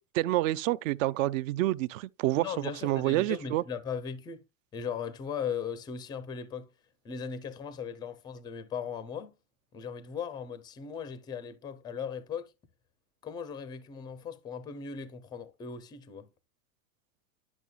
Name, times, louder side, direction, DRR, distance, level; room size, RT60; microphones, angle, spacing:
voice 1, 0.1-3.6, right 16 dB, 60° right, 0.5 m, -28 dB
voice 2, 2.3-4.4 4.7-6.7 7.0-9.3 9.7-12.5 13.2-16.3, left 6 dB, 10° left, 0.4 m, -38 dB
11.0 x 6.1 x 2.2 m
supercardioid pair, 130°, 46 cm